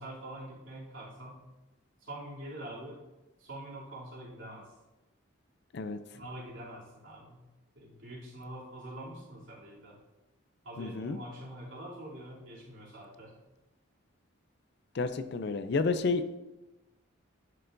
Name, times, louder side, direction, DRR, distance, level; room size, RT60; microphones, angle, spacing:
voice 1, 0.0-1.4 2.0-3.0 3.4-4.7 6.1-7.4 7.7-10.0 10.6-13.4, right 1 dB, 70° right, -7 dB, 2.9 m, -45 dB
voice 2, 10.8-11.2 14.9-16.2, left 4 dB, 55° left, 10 dB, 0.4 m, -30 dB
10.5 x 6.6 x 2.6 m, 1.0 s
head